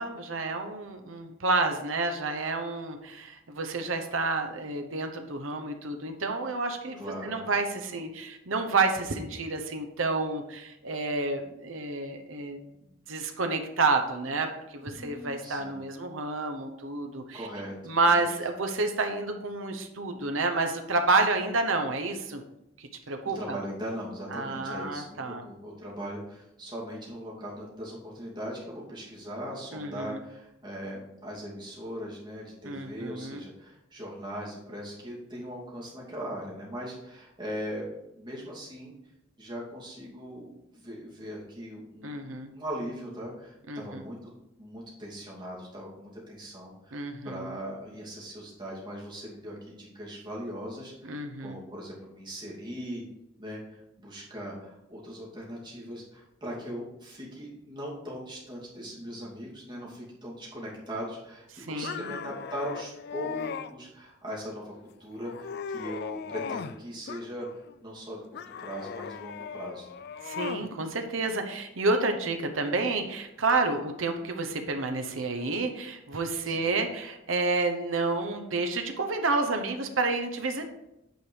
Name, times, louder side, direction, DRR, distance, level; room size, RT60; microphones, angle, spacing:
voice 1, 0.0-12.6 13.1-17.5 17.8-22.4 22.8-23.6 24.3-25.4 29.7-30.2 32.6-33.4 42.0-42.5 43.7-44.0 46.9-47.5 51.1-51.6 61.7-62.2 70.2-80.7, right 3 dB, 90° right, 5 dB, 1.0 m, -29 dB
voice 2, 7.0-7.4 14.8-15.8 17.3-17.8 18.0-18.3 23.2-38.9 39.4-44.3 44.6-53.0 53.4-64.7 65.0-67.5 67.8-70.0 76.5-76.8, equal, 25° right, -4 dB, 2.7 m, -40 dB
sound 1, 61.8-63.7 64.3-64.8 65.2-66.8 67.1-67.8 68.3-70.7, left 6 dB, 55° left, 0.4 m, -38 dB
9.2 x 5.1 x 4.7 m, 0.87 s
head